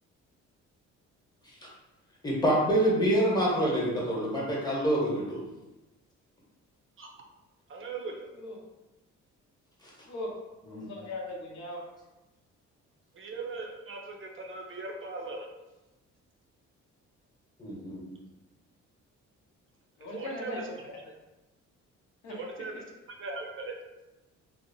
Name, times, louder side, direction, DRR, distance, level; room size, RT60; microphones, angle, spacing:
voice 1, 2.2-5.4 10.7-10.9 17.6-18.0, right 1 dB, 15° left, -5 dB, 0.9 m, -26 dB
voice 2, 7.7-8.3 13.1-15.5 20.1-20.7 22.3-22.8 23.2-23.8, right 3 dB, 45° right, 1 dB, 0.4 m, -39 dB
voice 3, 10.7-11.9 20.0-20.6 22.2-22.4, left 1 dB, 70° left, -1 dB, 0.7 m, -39 dB
2.7 x 2.0 x 2.6 m, 1.0 s
cardioid pair, 90°, 30 cm